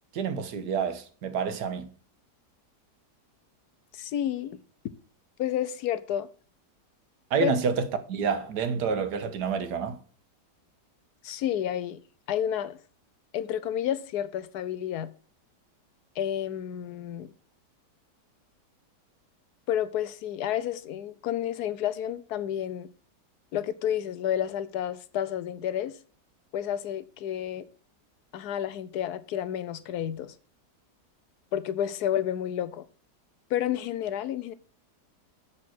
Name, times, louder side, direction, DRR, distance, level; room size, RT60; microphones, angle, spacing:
voice 1, 0.1-1.9 7.3-10.0, right 6 dB, 75° right, 1.6 m, -28 dB
voice 2, 3.9-4.6 5.4-6.3 7.4-7.5 11.2-12.0 12.3-12.8 13.3-15.1 16.2-17.3 19.7-22.9 23.5-26.0 26.5-27.6 28.3-30.3 31.5-32.8 33.5-34.5, left 10 dB, 70° left, 1.2 m, -30 dB
7.1 x 6.2 x 6.0 m
omnidirectional pair, 1.8 m